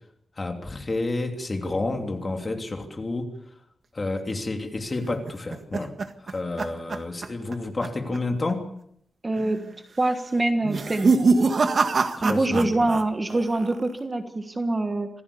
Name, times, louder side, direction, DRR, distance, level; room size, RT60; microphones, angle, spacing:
voice 1, 0.4-3.3 3.9-5.9 6.2-8.6 12.2-13.0, left 2 dB, 25° left, 3 dB, 3.1 m, -30 dB
sound 1, 5.0-7.6 7.8-8.2 8.5-8.6 9.3-9.7 10.6-13.0 13.3-13.9, right 4 dB, 45° right, 1.6 m, -24 dB
voice 2, 9.2-9.6 10.0-11.1 12.2-15.1, right 2 dB, 20° right, 6 dB, 1.5 m, -24 dB
26.0 x 17.0 x 7.0 m, 0.70 s
wide cardioid pair, 165°, 0 cm